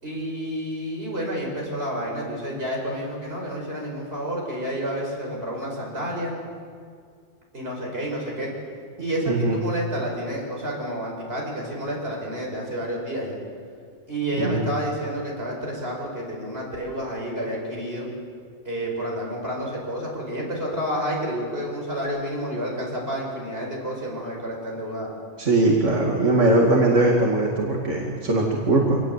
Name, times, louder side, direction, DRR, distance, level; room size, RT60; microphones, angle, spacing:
voice 1, 0.0-6.3 7.5-8.5 9.0-13.4 14.1-18.1 18.6-25.1, equal, 55° right, -1 dB, 6.0 m, -30 dB
voice 2, 9.3-9.6 14.3-14.7 25.4-29.0, right 2 dB, 90° right, -1 dB, 2.7 m, -20 dB
25.5 x 19.0 x 8.3 m, 2.1 s
omnidirectional pair, 1.2 m